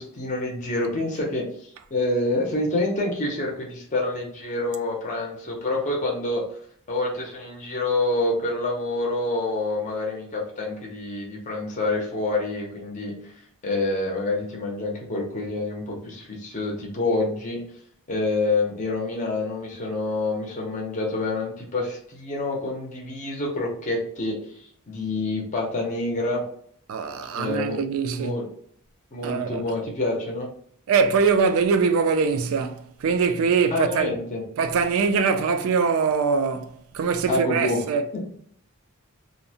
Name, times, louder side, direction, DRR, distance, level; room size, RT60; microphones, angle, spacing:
voice 1, 0.0-6.4 6.9-13.3 13.6-17.6 18.1-24.4 24.9-26.4 27.3-27.8 28.1-28.4 29.1-30.5 33.7-34.4 37.3-37.8, left 2 dB, 35° left, 0.6 m, -27 dB
voice 2, 26.9-28.4 29.2-29.6 30.9-34.1 34.6-38.3, right 5 dB, 65° right, 0.3 m, -23 dB
2.5 x 2.0 x 2.7 m
head